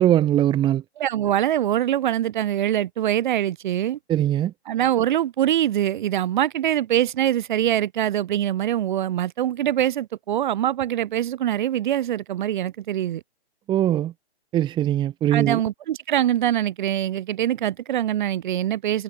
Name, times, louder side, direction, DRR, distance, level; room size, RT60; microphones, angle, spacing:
voice 1, 0.0-0.8 4.1-4.5 13.7-14.1 14.5-15.6, right 12 dB, 15° right, 2.0 m, -21 dB
voice 2, 1.0-4.0 4.7-13.2 15.3-19.0, right 11 dB, 45° right, 7.1 m, -23 dB
hypercardioid pair, 150°, 33 cm